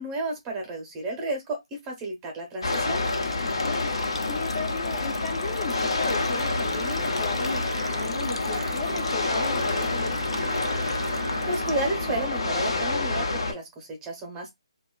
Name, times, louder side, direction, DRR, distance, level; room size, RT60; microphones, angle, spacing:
voice 1, 0.0-3.0 11.5-14.5, right 2 dB, 15° right, 0.8 m, -32 dB
sound 1, 2.6-13.5, left 3 dB, 65° left, 0.9 m, -28 dB
sound 2, 2.7-12.0, left 3 dB, 85° left, 0.6 m, -40 dB
voice 2, 3.4-3.9 4.2-10.5, left 3 dB, 25° left, 0.7 m, -36 dB
Singing, 6.2-12.3, right 4 dB, 65° right, 0.3 m, -39 dB
2.8 x 2.3 x 2.2 m
hypercardioid pair, 155°, 3 cm